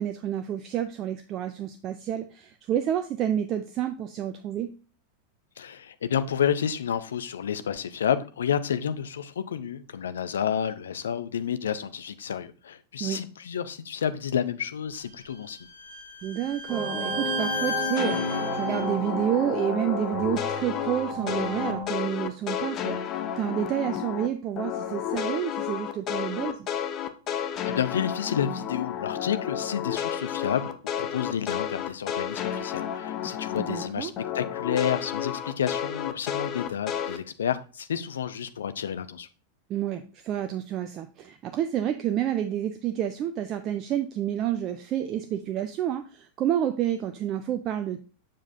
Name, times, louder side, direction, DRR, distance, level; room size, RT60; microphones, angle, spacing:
voice 1, 0.0-4.7 13.0-13.2 16.2-26.7 33.6-34.1 39.7-48.0, right 10 dB, 35° right, 0.5 m, -29 dB
voice 2, 5.6-15.6 27.3-39.3, left 8 dB, 65° left, 0.6 m, -30 dB
Bowed string instrument, 15.1-18.9, left 2 dB, 65° right, 1.6 m, -34 dB
sound 1, 16.7-21.8, right 1 dB, 15° left, 4.0 m, -33 dB
sound 2, 18.0-24.3 24.6-33.9 34.2-37.2, left 9 dB, 35° left, 0.8 m, -31 dB
7.5 x 7.1 x 2.7 m
figure-of-eight pair, 90°, 0 cm